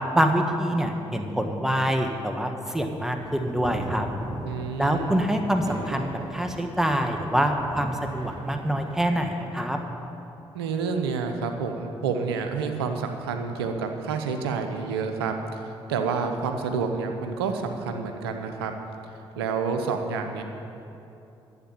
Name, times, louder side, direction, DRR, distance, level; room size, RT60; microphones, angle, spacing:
voice 1, 0.1-4.1 4.8-9.8, equal, 5° right, 4 dB, 1.6 m, -25 dB
sound 1, 3.2-9.1, right 1 dB, 40° right, 3.0 m, -38 dB
voice 2, 4.4-5.4 10.5-18.7 19.4-20.4, right 5 dB, 90° right, 5 dB, 0.8 m, -29 dB
12.5 x 8.1 x 8.8 m, 2.9 s
hypercardioid pair, 40°, 13 cm